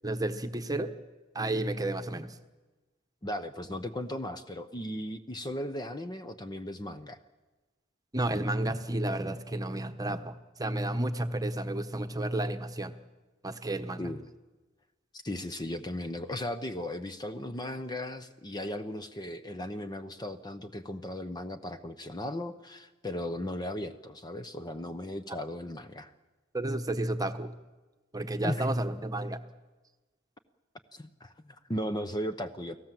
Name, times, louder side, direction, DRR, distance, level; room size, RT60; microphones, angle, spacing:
voice 1, 0.0-0.9 1.3-2.3 8.1-12.9 13.4-14.0 26.5-27.5 28.1-29.4, right 1 dB, 20° right, 7 dB, 1.2 m, -31 dB
voice 2, 3.2-7.2 14.0-14.2 15.2-26.1 28.4-28.7 30.9-32.8, left 1 dB, 20° left, 9 dB, 0.9 m, -36 dB
30.0 x 18.5 x 7.7 m, 1.2 s
head